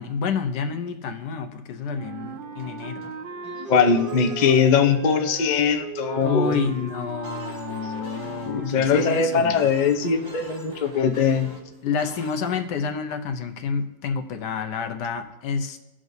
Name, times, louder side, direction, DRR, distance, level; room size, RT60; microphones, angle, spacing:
voice 1, 0.0-3.1 6.2-9.7 11.8-15.8, left 5 dB, 80° left, 7 dB, 1.4 m, -29 dB
sound 1, 1.9-12.6, equal, 15° right, 1.4 m, -44 dB
Wind instrument woodwind instrument, 1.9-9.6, right 6 dB, 70° right, 0.5 m, -37 dB
voice 2, 3.7-6.5 8.4-11.5, left 6 dB, 55° left, 4 dB, 0.5 m, -21 dB
17.5 x 6.2 x 2.7 m, 1.0 s
omnidirectional pair, 1.8 m